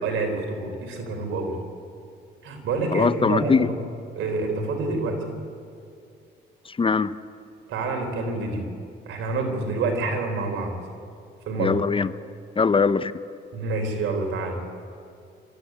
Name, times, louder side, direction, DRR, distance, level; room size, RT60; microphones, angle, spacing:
voice 1, 0.0-1.6 2.4-3.7 4.1-5.4 7.7-8.7 9.1-10.8 11.5-11.8 13.5-14.6, right 3 dB, 80° right, 3 dB, 4.0 m, -27 dB
voice 2, 2.9-3.7 6.7-7.1 11.6-12.1 12.6-13.1, left 5 dB, 25° left, 15 dB, 0.6 m, -21 dB
25.5 x 13.5 x 9.4 m, 2.4 s
cardioid pair, 90°, 20 cm